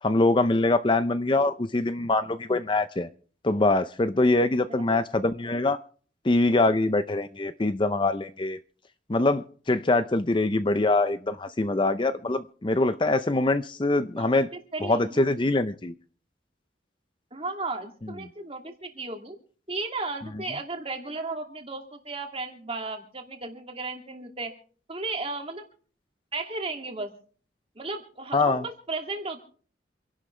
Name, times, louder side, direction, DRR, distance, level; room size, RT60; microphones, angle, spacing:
voice 1, 0.0-3.1 3.4-5.8 6.2-8.6 9.1-14.5 14.8-15.9 28.3-28.6, left 2 dB, 25° left, 11 dB, 0.6 m, -24 dB
voice 2, 14.2-15.2 17.3-19.4 19.7-24.5 24.9-25.6 26.3-27.1 27.8-29.4, right 3 dB, 30° right, 3 dB, 2.5 m, -35 dB
27.0 x 11.5 x 3.3 m, 0.43 s
head